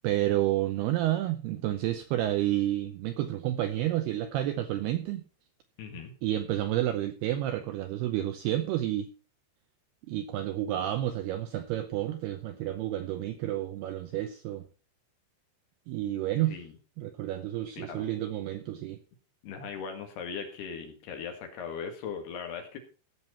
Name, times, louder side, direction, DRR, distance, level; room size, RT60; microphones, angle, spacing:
voice 1, 0.0-5.2 6.2-9.1 10.1-14.6 15.9-16.6 17.0-19.0, right 13 dB, 85° right, 2.3 m, -30 dB
voice 2, 5.8-6.1 16.5-16.7 17.8-18.1 19.4-22.8, left 6 dB, 65° left, 3.5 m, -39 dB
16.0 x 7.3 x 4.3 m
omnidirectional pair, 5.4 m